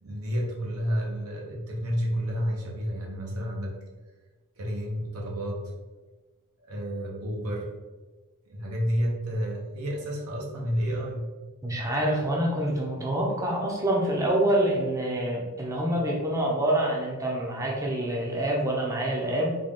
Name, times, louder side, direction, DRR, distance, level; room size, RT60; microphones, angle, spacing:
voice 1, 0.0-3.8 4.6-5.7 6.6-7.7 8.5-11.3, equal, 85° right, -2 dB, 0.9 m, -30 dB
voice 2, 11.6-19.6, right 1 dB, 15° right, -3 dB, 0.6 m, -26 dB
3.8 x 2.4 x 3.5 m, 1.3 s
head